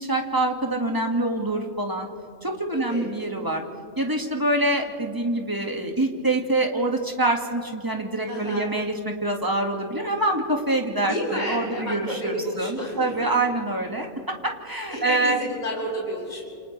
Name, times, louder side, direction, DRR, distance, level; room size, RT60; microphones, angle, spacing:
voice 1, 0.0-2.1 2.4-3.6 4.0-15.4, right 2 dB, 15° right, 1 dB, 1.8 m, -25 dB
voice 2, 2.7-3.3 8.2-8.7 11.1-13.1 14.9-16.4, equal, 30° left, -5 dB, 5.8 m, -31 dB
30.0 x 28.0 x 3.3 m, 2.2 s
omnidirectional pair, 1.5 m